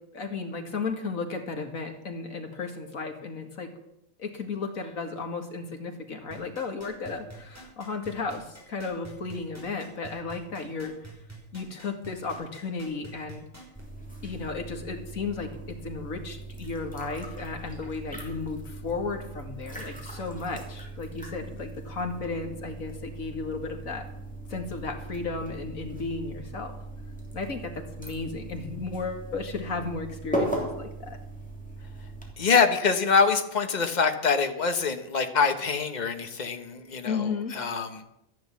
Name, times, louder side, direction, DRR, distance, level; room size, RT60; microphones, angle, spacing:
voice 1, 0.1-3.7 4.2-11.1 11.5-13.4 14.2-24.0 24.5-26.7 27.3-31.2 37.1-37.6, left 4 dB, 85° left, 4 dB, 2.4 m, -34 dB
sound 1, 6.3-13.8 14.3-14.4, right 2 dB, 10° right, 5.5 m, -46 dB
sound 2, 13.7-32.3, right 1 dB, 5° left, 3.1 m, -38 dB
voice 2, 32.4-38.1, left 5 dB, 35° left, 7 dB, 1.4 m, -25 dB
13.0 x 11.0 x 7.4 m, 0.82 s
omnidirectional pair, 1.4 m